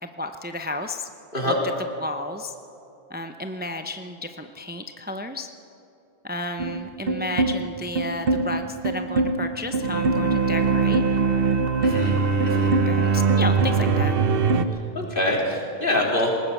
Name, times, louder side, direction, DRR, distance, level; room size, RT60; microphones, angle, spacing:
voice 1, 0.0-1.1 1.4-1.5 2.0-2.5 3.1-5.5 6.2-11.0 12.8-14.2, left 2 dB, 10° right, 6 dB, 0.7 m, -32 dB
sound 1, 6.6-14.6, right 4 dB, 65° right, 1.2 m, -22 dB
voice 2, 11.8-12.2 12.4-12.7 14.7-16.3, left 1 dB, 60° left, -2 dB, 3.9 m, -25 dB
20.0 x 18.5 x 7.2 m, 2.8 s
omnidirectional pair, 1.0 m